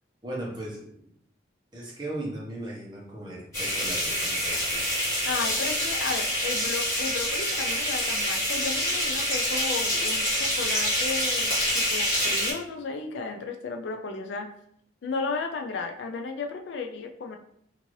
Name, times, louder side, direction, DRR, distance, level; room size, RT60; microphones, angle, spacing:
voice 1, 0.2-1.0 1.7-4.9, right 1 dB, 25° right, -4 dB, 0.9 m, -37 dB
sound 1, 3.5-12.5, equal, 15° left, 1.2 m, -26 dB
voice 2, 5.2-14.5 15.0-17.4, left 4 dB, 80° left, 4 dB, 0.4 m, -34 dB
2.7 x 2.5 x 3.0 m, 0.69 s
head